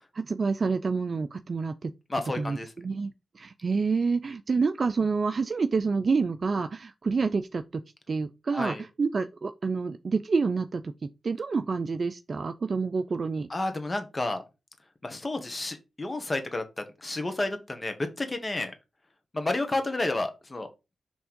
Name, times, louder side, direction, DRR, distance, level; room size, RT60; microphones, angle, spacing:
voice 1, 0.1-1.9 2.3-13.5, right 4 dB, 55° right, 0.4 m, -28 dB
voice 2, 2.1-2.7 8.5-8.8 13.5-14.4 15.0-18.7 19.3-20.7, left 2 dB, 30° left, 1.5 m, -31 dB
6.0 x 3.5 x 5.3 m
cardioid pair, 60°, 0 cm